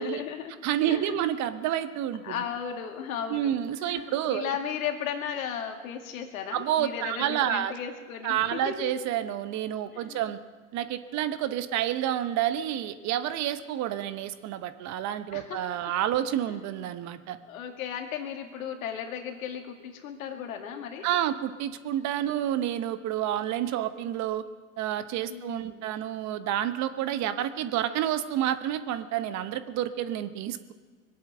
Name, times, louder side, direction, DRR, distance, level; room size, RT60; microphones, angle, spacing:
voice 1, 0.0-0.6 0.9-1.2 2.2-8.9 9.9-10.2 15.3-15.9 17.4-21.1 25.3-25.9, left 8 dB, 75° left, 4 dB, 2.3 m, -36 dB
voice 2, 0.6-2.3 3.3-4.5 6.5-7.7 8.2-10.4 10.7-17.4 21.0-24.4 24.8-30.7, right 11 dB, 40° right, 12 dB, 1.0 m, -29 dB
21.5 x 8.5 x 7.8 m, 1.5 s
hypercardioid pair, 105°, 41 cm